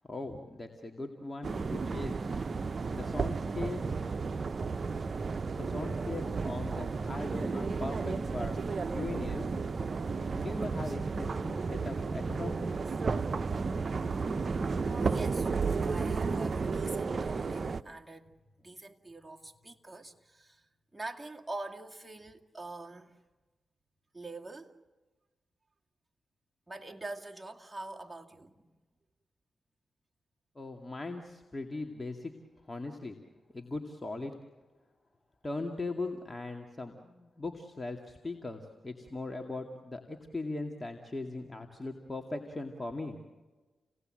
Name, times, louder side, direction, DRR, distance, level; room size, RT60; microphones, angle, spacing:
voice 1, 0.1-2.2 2.9-4.2 5.5-9.5 10.3-12.6 30.6-32.3 32.7-33.2 33.5-34.3 35.4-43.2, left 2 dB, 25° left, 2.4 m, -39 dB
sound 1, 1.4-17.8, right 4 dB, 50° right, 0.8 m, -33 dB
voice 2, 14.9-15.5 15.8-18.3 18.6-20.6 20.9-23.2 24.1-24.7 26.7-28.7, right 2 dB, 15° right, 2.4 m, -44 dB
29.5 x 18.0 x 7.8 m
supercardioid pair, 45°, 0 cm